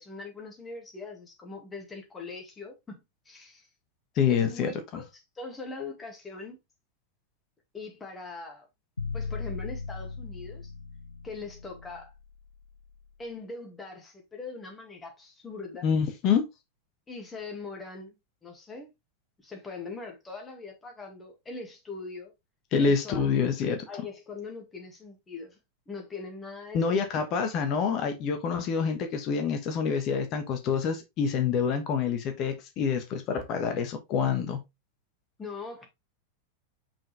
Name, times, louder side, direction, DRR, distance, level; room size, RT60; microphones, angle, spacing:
voice 1, 0.0-3.7 4.3-6.6 7.7-8.7 9.1-10.7 11.2-12.1 13.2-15.9 17.1-18.9 19.4-22.3 22.8-23.2 23.9-25.6 25.9-27.3 35.4-35.9, left 3 dB, 15° left, 2.3 m, -41 dB
voice 2, 4.1-5.0 15.8-16.5 22.7-23.8 26.7-34.6, left 6 dB, 35° left, 1.3 m, -27 dB
sound 1, 9.0-13.1, left 4 dB, 80° left, 0.4 m, -38 dB
6.0 x 4.8 x 3.4 m
figure-of-eight pair, 90°, 0 cm